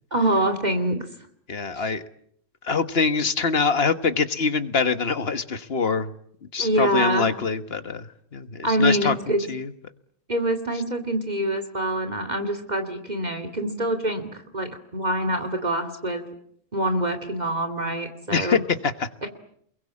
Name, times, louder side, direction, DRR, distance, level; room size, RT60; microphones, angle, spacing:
voice 1, 0.1-1.1 1.7-1.9 6.6-7.3 8.6-9.4 10.3-16.2 16.7-18.6 19.2-19.3, right 1 dB, 35° right, 7 dB, 2.5 m, -25 dB
voice 2, 1.5-2.0 2.6-6.1 6.5-9.1 9.5-9.7 18.3-19.1, left 5 dB, 55° left, 11 dB, 1.6 m, -24 dB
28.5 x 22.5 x 8.6 m, 0.69 s
omnidirectional pair, 1.3 m